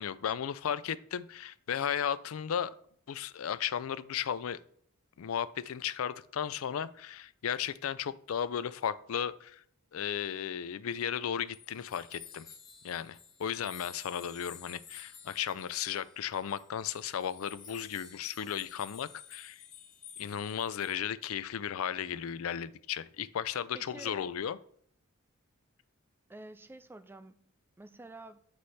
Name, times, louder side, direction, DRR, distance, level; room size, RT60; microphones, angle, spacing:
voice 1, 0.0-2.7 3.1-4.6 5.2-9.6 9.9-12.5 12.8-19.6 20.2-24.6, left 8 dB, 80° left, 0.4 m, -35 dB
sound 1, 11.5-21.0, left 7 dB, 40° left, 1.3 m, -52 dB
voice 2, 23.7-24.2 26.3-28.4, right 2 dB, 10° right, 0.3 m, -49 dB
9.5 x 3.2 x 4.2 m
head